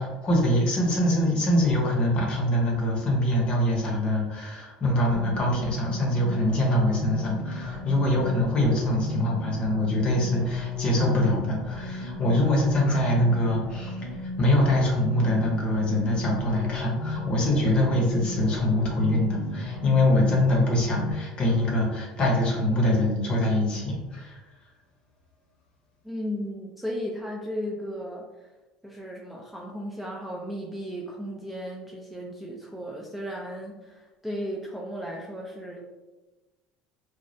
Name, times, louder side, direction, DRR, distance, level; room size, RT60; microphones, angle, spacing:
voice 1, 0.0-24.4, left 1 dB, 40° left, -1 dB, 0.7 m, -24 dB
sound 1, 5.1-21.1, left 3 dB, 30° right, 0.7 m, -34 dB
voice 2, 26.0-28.3 28.8-35.8, equal, 5° right, -2 dB, 0.3 m, -35 dB
2.2 x 2.0 x 2.7 m, 1.1 s
supercardioid pair, 105°, 3 cm